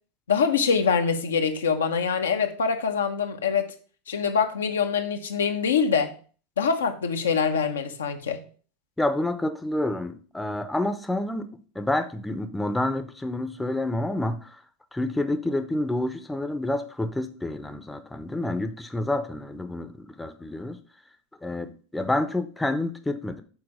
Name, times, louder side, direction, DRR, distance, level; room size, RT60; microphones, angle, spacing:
voice 1, 0.3-3.7 4.1-6.1 6.6-8.4, left 6 dB, 80° left, 0.9 m, -24 dB
voice 2, 9.0-14.6 14.9-20.8 21.4-23.4, left 1 dB, 5° left, 0.7 m, -28 dB
6.4 x 4.2 x 4.9 m
hypercardioid pair, 90°, 0 cm